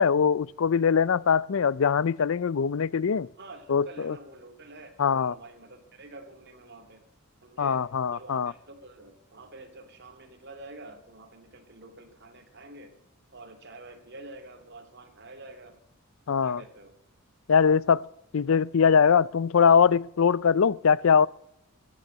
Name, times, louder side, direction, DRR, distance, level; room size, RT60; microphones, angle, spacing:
voice 1, 0.0-3.3 3.7-4.1 5.0-5.3 7.6-8.5 16.3-16.6 17.5-18.0 18.3-21.3, left 6 dB, 65° left, 0.4 m, -22 dB
voice 2, 3.4-7.0 7.4-7.8 8.1-12.9 13.3-15.7 16.4-16.9, right 2 dB, 50° right, 2.9 m, -47 dB
14.0 x 9.6 x 7.8 m
head